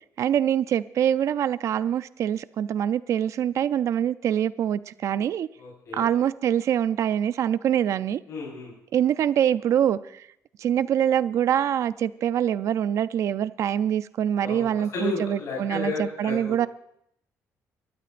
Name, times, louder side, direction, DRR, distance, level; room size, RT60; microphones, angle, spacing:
voice 1, 0.2-5.5 5.9-8.2 8.9-10.0 10.6-16.7, right 10 dB, 60° right, 0.5 m, -24 dB
voice 2, 5.6-6.1 8.3-8.7 14.4-16.5, left 4 dB, 65° left, 4.7 m, -33 dB
24.0 x 12.5 x 2.6 m
cardioid pair, 130°, 6 cm